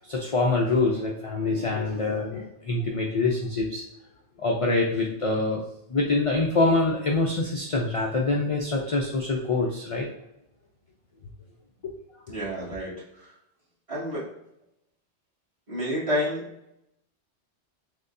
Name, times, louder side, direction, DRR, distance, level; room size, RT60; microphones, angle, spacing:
voice 1, 0.1-3.8 4.4-5.6 5.9-10.1 11.8-11.9, left 3 dB, 55° left, -1 dB, 0.3 m, -25 dB
voice 2, 12.3-12.9 13.9-14.3 15.7-16.4, equal, 30° right, -9 dB, 1.6 m, -28 dB
6.4 x 2.2 x 2.5 m, 0.82 s
omnidirectional pair, 1.2 m